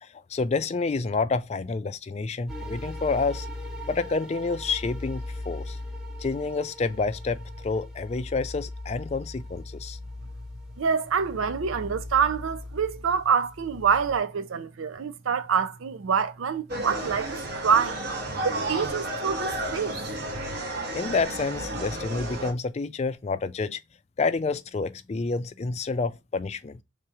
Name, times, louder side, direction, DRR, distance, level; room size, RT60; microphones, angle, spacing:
voice 1, 0.0-3.5 3.9-5.8 6.2-10.0 20.9-23.8 24.2-26.8, left 4 dB, 35° left, 0.3 m, -29 dB
sound 1, 2.5-14.2, left 1 dB, 5° right, 0.7 m, -39 dB
voice 2, 10.8-18.0 18.4-20.0, right 6 dB, 85° right, 0.5 m, -26 dB
sound 2, 16.7-22.5, right 1 dB, 50° right, 1.0 m, -32 dB
3.6 x 2.9 x 4.8 m
head